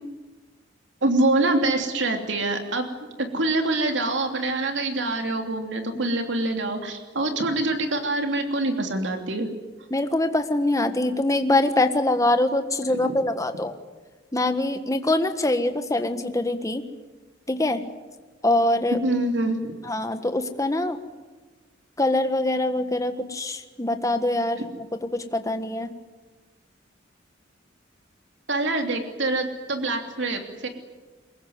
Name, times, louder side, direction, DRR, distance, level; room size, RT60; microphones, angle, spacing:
voice 1, 1.0-2.9 3.2-9.5 12.9-13.2 18.9-19.8 24.6-24.7 28.5-30.7, right 2 dB, 70° right, 5 dB, 3.0 m, -25 dB
voice 2, 9.9-13.7 14.3-16.8 17.5-17.8 18.4-19.0 19.9-21.0 22.0-24.6 25.0-25.9, left 2 dB, 15° left, 8 dB, 1.5 m, -24 dB
23.5 x 20.5 x 9.5 m, 1.3 s
head